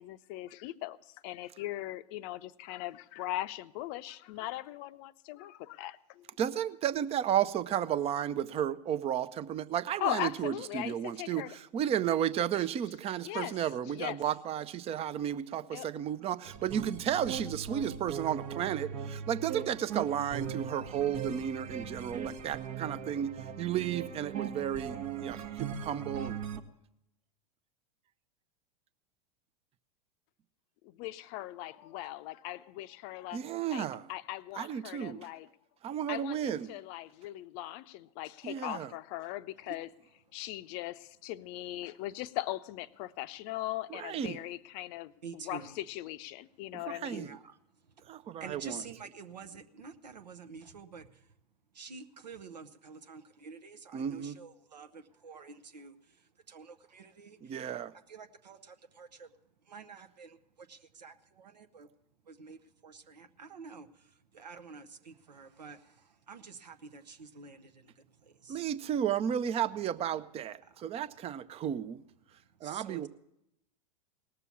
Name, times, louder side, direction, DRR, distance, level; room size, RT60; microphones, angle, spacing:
voice 1, 0.0-6.2 10.0-11.6 13.2-14.2 15.7-15.9 30.8-33.4 33.7-35.5 36.1-39.9 40.3-47.3, left 15 dB, 45° left, 13 dB, 0.6 m, -39 dB
voice 2, 6.4-11.4 11.7-23.3 23.6-26.4 33.3-34.0 34.6-35.3 35.8-36.7 38.4-38.9 43.9-44.4 46.9-47.3 48.1-48.8 53.9-54.4 57.5-57.9 68.5-72.0 72.6-73.1, right 9 dB, 30° right, 15 dB, 0.6 m, -33 dB
sound 1, 16.4-26.6, right 7 dB, 55° right, 1.1 m, -40 dB
voice 3, 45.2-45.8 47.1-48.1 48.4-51.3 51.7-57.7 57.9-59.3 59.6-61.9 62.2-68.7 70.6-70.9 72.6-73.1, right 5 dB, 85° right, 9 dB, 0.9 m, -49 dB
18.5 x 6.8 x 7.1 m, 0.82 s
hypercardioid pair, 95°, 21 cm